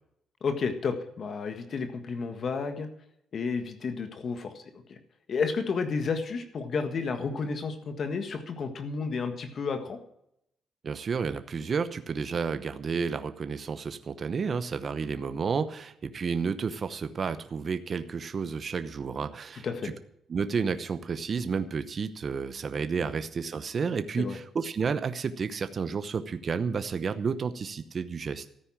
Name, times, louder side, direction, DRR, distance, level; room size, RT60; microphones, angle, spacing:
voice 1, 0.4-2.9 3.3-4.6 4.9-5.0 5.3-10.0 19.6-19.9 23.0-23.1 24.2-24.4, left 5 dB, 50° left, 8 dB, 1.6 m, -31 dB
voice 2, 10.8-19.9 20.3-28.5, right 5 dB, 40° right, 11 dB, 0.9 m, -31 dB
13.5 x 9.7 x 7.3 m, 0.77 s
cardioid pair, 120°, 0 cm